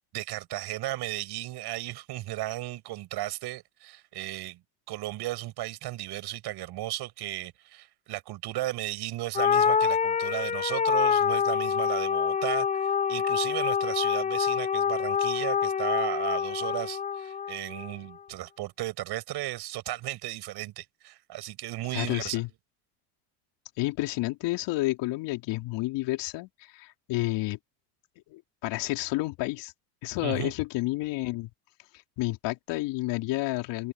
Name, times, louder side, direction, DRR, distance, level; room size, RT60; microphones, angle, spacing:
voice 1, 0.1-4.6 4.9-22.4 30.2-30.5, right 16 dB, 55° right, 7.7 m, -35 dB
sound 1, 9.3-17.9, left 7 dB, 15° left, 0.6 m, -26 dB
voice 2, 21.9-22.5 23.8-27.6 28.3-29.7 30.0-31.5 32.2-33.9, left 20 dB, 60° left, 4.2 m, -30 dB
supercardioid pair, 100°, 48 cm